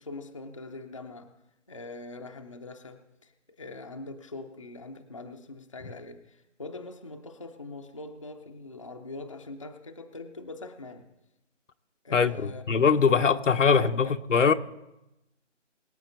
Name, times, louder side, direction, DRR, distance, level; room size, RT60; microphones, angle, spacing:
voice 1, 0.0-1.3 1.7-11.1 12.0-14.1, left 2 dB, 25° left, 0.6 m, -42 dB
voice 2, 12.1-14.5, left 5 dB, 80° left, 0.9 m, -22 dB
22.5 x 8.5 x 4.0 m
hypercardioid pair, 165°, 37 cm